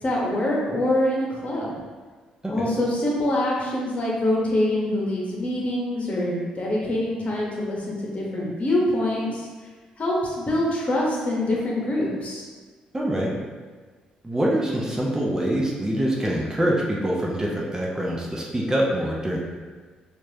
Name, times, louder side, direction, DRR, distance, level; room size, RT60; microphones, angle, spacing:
voice 1, 0.0-1.7 2.5-9.5 10.0-12.5, left 1 dB, 40° left, -3 dB, 1.3 m, -25 dB
voice 2, 12.9-13.3 14.2-19.4, right 1 dB, 20° right, -3 dB, 0.9 m, -25 dB
4.5 x 2.7 x 2.9 m, 1.4 s
hypercardioid pair, 50°, 3 cm